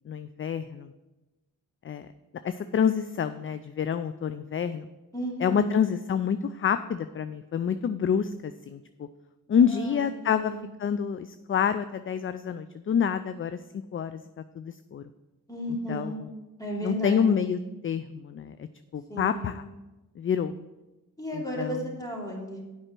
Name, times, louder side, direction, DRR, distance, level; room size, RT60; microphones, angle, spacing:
voice 1, 0.1-0.9 1.8-2.1 2.4-4.9 5.4-9.1 9.5-10.5 10.8-13.6 13.9-14.2 14.6-15.0 15.9-16.3 16.8-18.7 18.9-19.6 20.2-20.6 21.3-21.9, left 7 dB, 35° left, 12 dB, 0.4 m, -27 dB
voice 2, 5.1-5.7 9.6-10.7 15.5-16.2 16.6-17.3 19.1-19.5 21.2-22.6, right 1 dB, 10° left, -3 dB, 3.0 m, -34 dB
8.0 x 5.5 x 6.0 m, 1.1 s
cardioid pair, 75°, 35 cm